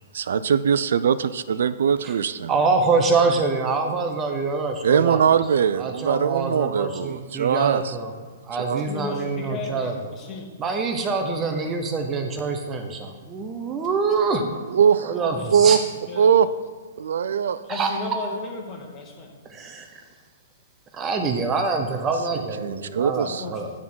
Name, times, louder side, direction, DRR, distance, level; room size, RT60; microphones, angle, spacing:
voice 1, 0.1-2.5 4.8-8.0 8.5-8.8 14.7-15.2 15.5-15.8 16.2-16.5 17.0-17.6 18.3-18.4 22.3-23.4, right 7 dB, 75° right, 15 dB, 0.3 m, -21 dB
voice 2, 2.5-5.2 5.8-8.1 8.5-10.0 10.6-14.6 15.0-15.8 17.7-17.9 19.5-19.9 20.9-23.7, right 4 dB, 20° right, 4 dB, 0.7 m, -25 dB
voice 3, 8.7-10.5 14.1-14.2 15.1-15.7 16.1-16.4 17.6-19.3 23.2-23.5, left 3 dB, 20° left, 0 dB, 1.4 m, -35 dB
9.4 x 3.6 x 6.1 m, 1.5 s
hypercardioid pair, 155°, 0 cm